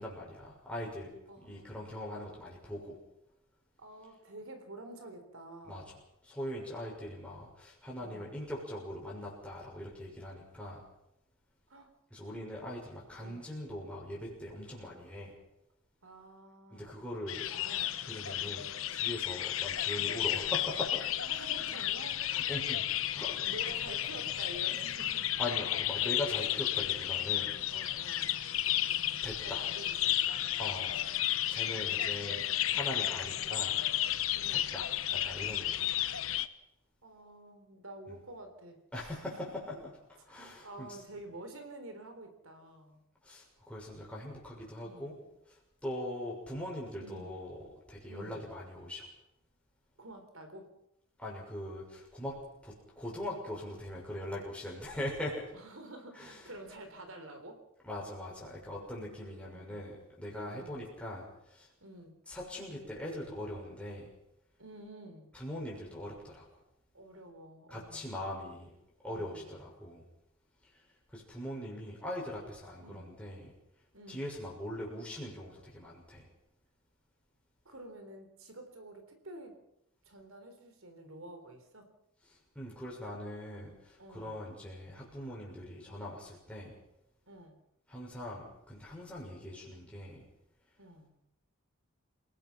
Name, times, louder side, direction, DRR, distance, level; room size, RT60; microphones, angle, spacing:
voice 1, 0.0-1.1 1.4-3.0 5.7-5.9 6.2-10.8 12.1-15.3 16.7-17.8 18.0-21.2 22.3-22.8 23.1-23.4 23.6-23.8 25.2-27.6 29.2-29.6 30.6-31.0 31.5-32.4 32.7-33.8 34.5-34.9 35.1-36.0 38.1-38.2 38.9-39.9 40.3-41.0 43.2-45.1 45.5-45.6 45.8-47.6 47.9-49.1 51.2-55.5 56.1-56.5 57.8-61.7 62.3-64.1 65.3-66.4 67.7-68.7 69.0-70.0 71.1-73.5 74.1-76.3 82.5-86.7 87.9-90.2, left 1 dB, 5° left, -4 dB, 6.6 m, -41 dB
voice 2, 1.3-1.9 3.8-5.9 8.0-8.4 11.7-11.9 13.2-13.5 16.0-17.0 17.7-18.0 21.2-22.2 23.4-25.3 27.7-28.3 29.4-30.4 32.6-33.3 34.3-34.7 37.0-39.3 40.6-43.0 44.8-45.1 47.0-47.3 48.1-48.5 50.0-50.7 55.5-57.6 59.4-59.8 60.5-60.9 61.8-62.2 64.6-65.3 66.9-68.2 69.0-69.5 72.8-73.1 73.9-74.2 77.7-79.6 80.1-81.9 84.0-84.4 87.3-87.6 90.8-91.1, right 1 dB, 70° right, 6 dB, 3.9 m, -49 dB
sound 1, 17.3-36.5, left 12 dB, 70° left, 1.0 m, -33 dB
29.0 x 18.0 x 5.8 m, 0.82 s
head